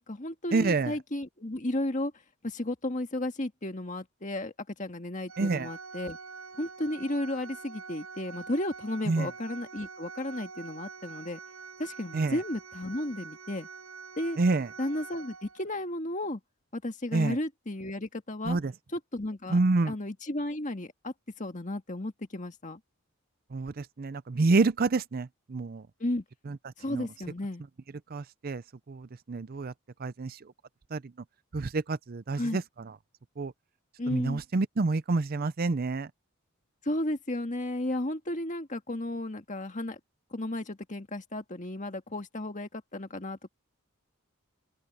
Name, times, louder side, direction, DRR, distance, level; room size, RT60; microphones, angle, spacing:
voice 1, 0.0-2.1 2.4-6.2 6.6-11.4 11.8-13.7 14.2-14.4 14.8-16.4 16.7-18.6 18.9-19.6 19.8-22.8 26.0-26.2 26.8-27.6 32.4-32.6 34.0-34.4 36.8-40.0 40.3-43.5, left 1 dB, 35° left, 1.8 m, -34 dB
voice 2, 0.5-0.9 5.4-5.7 9.1-9.3 12.1-12.4 14.4-14.7 17.1-17.4 18.5-18.7 19.5-19.9 23.5-25.8 26.5-26.6 26.9-27.1 28.1-28.6 28.9-29.7 30.0-30.4 30.9-31.0 31.5-32.6 33.4-33.5 34.1-36.1, right 3 dB, 45° right, 0.5 m, -28 dB
Organ, 5.3-15.9, right 5 dB, 75° right, 7.2 m, -45 dB
open air
head